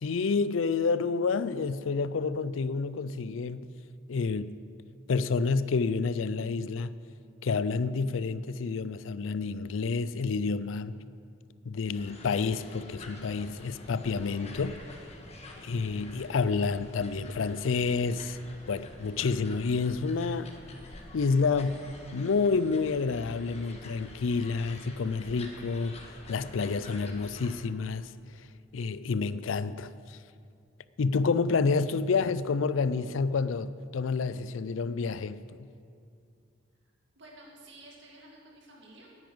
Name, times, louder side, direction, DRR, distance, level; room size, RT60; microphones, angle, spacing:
voice 1, 0.0-3.6 4.1-4.5 5.1-6.9 7.4-11.0 11.6-15.0 15.6-18.4 18.7-20.5 21.1-21.9 22.1-28.1 28.4-28.5 28.7-30.2 31.0-35.7, left 4 dB, 80° left, 0.5 m, -29 dB
sound 1, 11.9-27.5, left 1 dB, 35° left, 1.5 m, -48 dB
voice 2, 37.2-39.1, right 1 dB, 65° right, 2.2 m, -52 dB
10.0 x 9.6 x 8.8 m
head